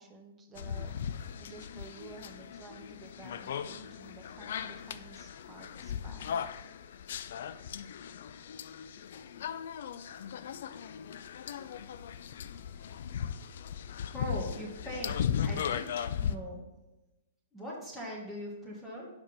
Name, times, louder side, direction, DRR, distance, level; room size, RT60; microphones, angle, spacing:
voice 1, 0.0-6.5, right 4 dB, 15° right, 4 dB, 1.0 m, -52 dB
sound 1, 0.6-16.4, left 8 dB, 60° left, 0.3 m, -37 dB
voice 2, 14.1-16.6 17.5-19.1, equal, 5° left, -5 dB, 1.6 m, -41 dB
5.3 x 5.1 x 5.4 m, 1.0 s
hypercardioid pair, 120°, 0 cm